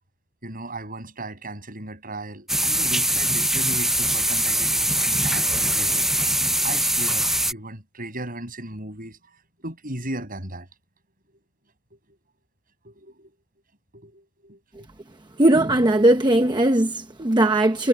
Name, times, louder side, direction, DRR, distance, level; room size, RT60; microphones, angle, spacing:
voice 1, 0.4-6.1 6.6-9.2 9.6-10.7 11.9-12.0 12.8-13.3 13.9-14.6, right 2 dB, 45° right, 7.1 m, -36 dB
sound 1, 2.5-7.5, right 1 dB, ahead, 0.4 m, -22 dB
voice 2, 15.4-17.9, right 1 dB, 20° right, 0.9 m, -19 dB
head